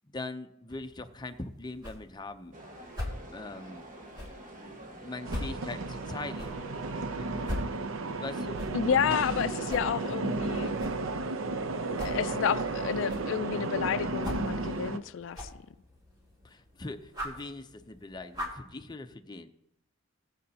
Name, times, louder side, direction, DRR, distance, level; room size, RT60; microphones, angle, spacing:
voice 1, 0.0-2.5 3.3-3.8 4.6-6.6 7.2-7.3 8.2-8.6 16.4-19.5, left 2 dB, 20° left, 0.6 m, -41 dB
sound 1, 0.7-18.7, left 1 dB, 20° right, 3.1 m, -43 dB
sound 2, 2.5-7.6, right 1 dB, 40° right, 1.5 m, -48 dB
sound 3, 5.2-15.0, right 2 dB, 85° right, 0.7 m, -33 dB
voice 2, 8.7-10.7 12.0-15.5, left 7 dB, 65° left, 0.3 m, -30 dB
19.5 x 7.6 x 2.8 m
head